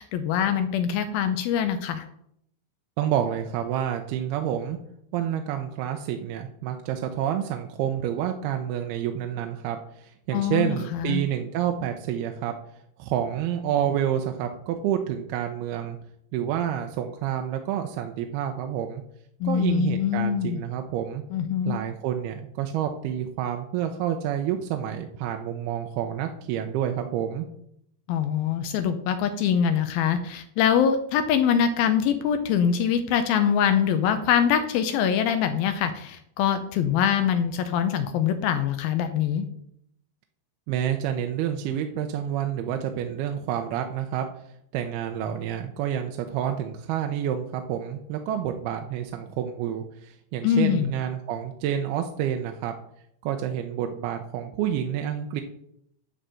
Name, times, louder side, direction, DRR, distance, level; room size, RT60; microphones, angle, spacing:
voice 1, 0.0-2.0 10.3-11.2 19.4-20.6 21.3-21.8 28.1-39.5 50.4-50.9, left 8 dB, 80° left, 9 dB, 2.3 m, -24 dB
voice 2, 3.0-4.8 5.1-12.5 13.0-16.0 16.3-19.0 19.4-21.2 21.7-27.5 40.7-44.3 44.7-52.7 53.2-55.4, right 10 dB, 80° right, 5 dB, 2.5 m, -28 dB
10.0 x 4.1 x 7.6 m, 0.72 s
omnidirectional pair, 4.7 m